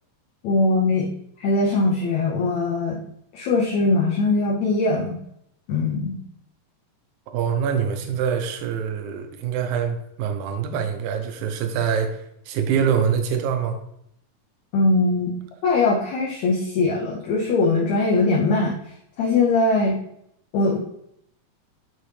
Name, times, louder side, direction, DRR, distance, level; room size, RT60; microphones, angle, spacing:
voice 1, 0.4-1.1 1.4-3.0 3.3-5.2 5.7-6.2 14.7-15.4 15.6-18.8 19.2-20.0 20.5-20.8, left 3 dB, 70° left, -3 dB, 1.9 m, -21 dB
voice 2, 7.3-13.8, right 7 dB, 75° right, 6 dB, 1.9 m, -25 dB
9.4 x 3.8 x 3.3 m, 0.74 s
omnidirectional pair, 4.1 m